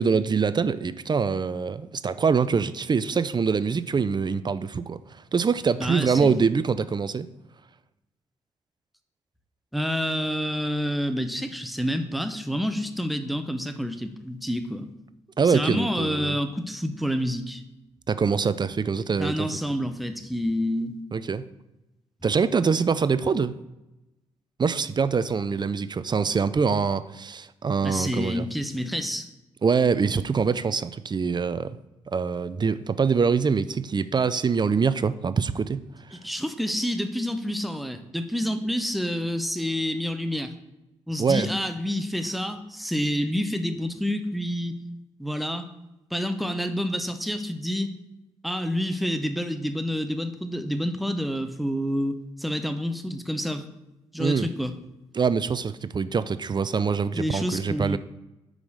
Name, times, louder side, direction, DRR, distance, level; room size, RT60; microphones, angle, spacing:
voice 1, 0.0-7.3 15.4-16.3 18.1-19.5 21.1-21.5 22.2-23.6 24.6-28.4 29.6-31.8 32.1-35.8 36.1-36.2 41.2-41.5 54.2-54.5 55.1-58.0, right 5 dB, 35° right, 14 dB, 0.4 m, -24 dB
voice 2, 5.8-6.4 9.7-14.9 15.5-17.6 19.2-20.9 27.8-29.3 36.1-40.5 41.1-44.8 45.2-45.7 46.1-47.9 48.4-53.7 54.1-54.7 57.1-58.0, equal, ahead, 8 dB, 0.8 m, -28 dB
5.2 x 4.9 x 6.2 m, 0.96 s
supercardioid pair, 50°, 13 cm